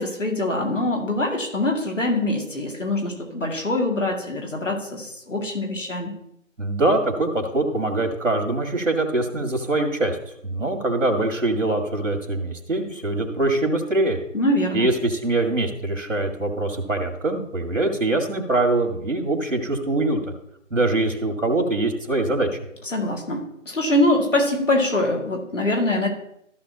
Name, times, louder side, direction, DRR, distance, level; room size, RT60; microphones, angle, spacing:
voice 1, 0.0-6.2 14.3-14.9 22.9-26.1, left 1 dB, 70° left, 1 dB, 2.4 m, -23 dB
voice 2, 6.6-10.2 10.4-14.2 14.7-20.3 20.7-22.5, right 2 dB, 70° right, 3 dB, 2.2 m, -23 dB
14.0 x 6.1 x 2.9 m, 0.77 s
figure-of-eight pair, 165°, 39 cm